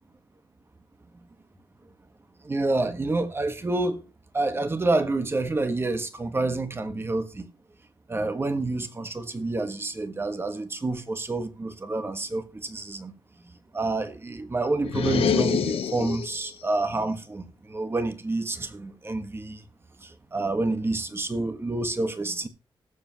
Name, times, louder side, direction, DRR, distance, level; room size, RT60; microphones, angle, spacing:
voice 1, 2.4-4.0 4.3-7.5 8.1-13.1 13.7-19.6 20.0-22.5, right 2 dB, 25° right, 1.4 m, -28 dB
sound 1, 14.8-16.5, left 7 dB, 80° left, 1.0 m, -26 dB
19.0 x 7.2 x 3.0 m
wide cardioid pair, 110°, 10 cm